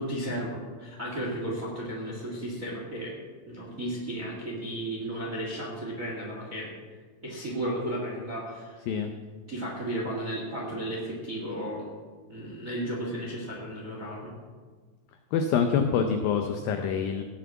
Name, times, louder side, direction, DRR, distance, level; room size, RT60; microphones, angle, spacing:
voice 1, 0.0-3.1 3.5-6.7 7.2-8.8 9.5-11.9 12.3-14.3, right 1 dB, 45° right, -2 dB, 1.0 m, -34 dB
voice 2, 15.3-17.2, left 6 dB, 85° left, 6 dB, 2.0 m, -26 dB
17.0 x 6.1 x 7.1 m, 1.5 s
omnidirectional pair, 5.0 m